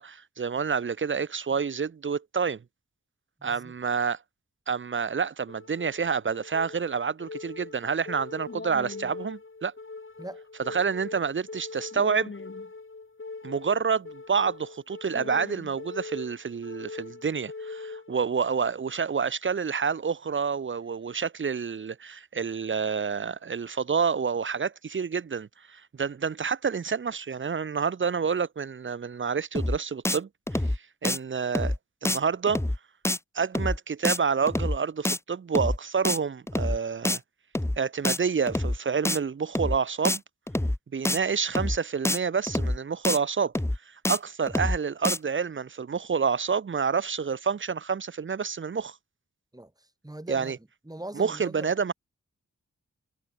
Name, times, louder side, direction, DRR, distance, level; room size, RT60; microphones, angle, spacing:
voice 1, 0.0-2.6 3.4-4.2 4.7-9.7 10.7-12.3 13.4-30.7 31.0-31.7 32.0-32.6 33.3-37.2 37.8-40.2 40.9-43.5 43.9-49.0 50.3-50.6 51.1-51.9, right 6 dB, 40° right, 0.6 m, -28 dB
voice 2, 3.4-3.7 10.2-10.4 49.5-50.5 50.8-51.7, right 1 dB, 10° right, 3.6 m, -41 dB
sound 1, 5.5-18.5, left 3 dB, 40° left, 3.7 m, -42 dB
sound 2, 29.6-29.8 30.1-30.2 30.5-30.8 31.0-31.2 31.6-31.8 32.1-32.2 32.5-32.8 33.1-33.2 33.6-33.8 34.0-34.2 34.5-34.8 35.1-35.2 35.6-35.8 36.1-36.2 36.5-36.8 37.1-37.2 37.6-37.8 38.0-38.2 38.5-38.8 39.1-39.2 39.6-39.8 40.0-40.2 40.5-40.8 41.1-41.2 41.6-41.8 42.1-42.2 42.5-42.8 43.0-43.2 43.6-43.8 44.1-44.2 44.5-44.8 45.0-45.2, left 1 dB, 10° left, 0.9 m, -26 dB
wide cardioid pair, 100°, 31 cm